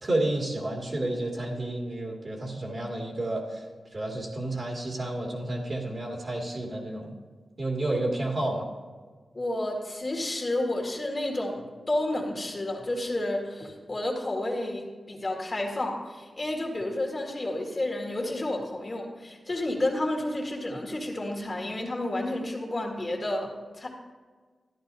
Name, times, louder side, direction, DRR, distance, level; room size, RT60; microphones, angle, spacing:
voice 1, 0.0-3.6 3.9-7.1 7.6-8.6, right 1 dB, 45° right, -2 dB, 2.3 m, -30 dB
voice 2, 9.3-23.5 23.8-23.9, left 1 dB, 40° left, -1 dB, 2.0 m, -31 dB
13.5 x 11.0 x 2.7 m, 1.5 s
wide cardioid pair, 85°, 0 cm